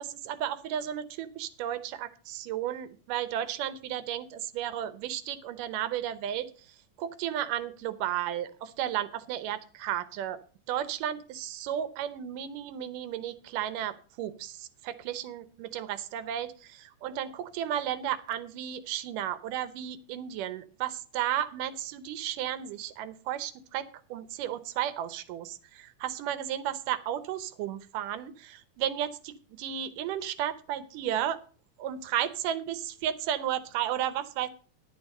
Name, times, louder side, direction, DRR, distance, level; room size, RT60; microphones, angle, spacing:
voice 1, 0.0-10.4 10.7-31.4 31.8-34.5, right 11 dB, 85° right, 15 dB, 2.5 m, -33 dB
11.0 x 8.6 x 5.3 m, 0.38 s
omnidirectional pair, 3.7 m